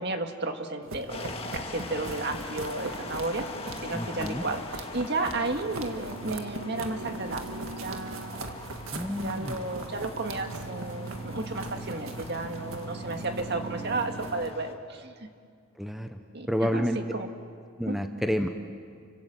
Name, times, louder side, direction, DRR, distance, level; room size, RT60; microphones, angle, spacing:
voice 1, 0.0-3.5 3.8-7.6 7.8-8.7 9.2-15.3 16.3-17.3 17.9-18.0, right 2 dB, 50° right, 5 dB, 1.9 m, -33 dB
sound 1, 0.8-14.5, right 2 dB, 70° right, 1.9 m, -39 dB
sound 2, 1.1-14.7, left 3 dB, 25° left, 1.8 m, -42 dB
voice 2, 3.9-4.4 8.9-9.6 15.8-16.2 16.5-17.0 17.8-18.5, equal, ahead, 6 dB, 0.9 m, -29 dB
30.0 x 25.5 x 7.7 m, 2.3 s
head